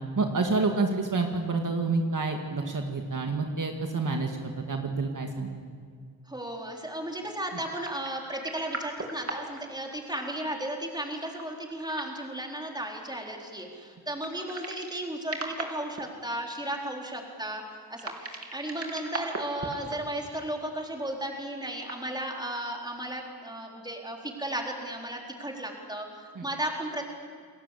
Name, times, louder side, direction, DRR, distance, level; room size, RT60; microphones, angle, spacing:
voice 1, 0.2-5.6 26.4-26.5, right 3 dB, 55° right, 3 dB, 2.1 m, -28 dB
voice 2, 6.3-17.6 17.9-27.0, right 1 dB, 10° right, 1 dB, 4.2 m, -35 dB
sound 1, 7.8-9.6 9.9-10.0 11.1-12.3 14.1-15.0 15.3-16.0 17.9-20.0 20.2-20.3 21.7-22.0, right 2 dB, 40° right, 3.4 m, -38 dB
29.0 x 20.0 x 8.6 m, 2.1 s
wide cardioid pair, 125°, 37 cm